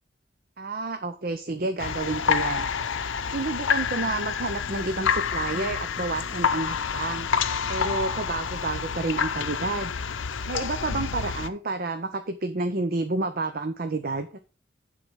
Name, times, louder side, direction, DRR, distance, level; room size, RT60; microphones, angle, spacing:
voice 1, 0.6-2.7 3.2-7.3 7.7-9.9 10.5-14.4, right 3 dB, 50° right, 8 dB, 0.7 m, -30 dB
sound 1, 1.8-11.5, left 6 dB, 85° left, 0.6 m, -28 dB
9.8 x 3.9 x 6.2 m, 0.34 s
head